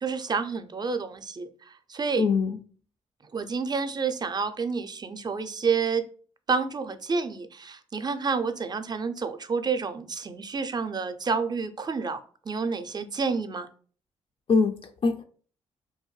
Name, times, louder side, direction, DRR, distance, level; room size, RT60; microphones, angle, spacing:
voice 1, 0.0-2.3 3.3-6.0 6.5-12.2 12.5-13.7, right 5 dB, 30° right, 9 dB, 0.4 m, -29 dB
voice 2, 2.2-2.6 14.5-15.2, left 4 dB, 45° left, 6 dB, 0.4 m, -23 dB
2.7 x 2.1 x 3.1 m, 0.43 s
hypercardioid pair, 45°, 13 cm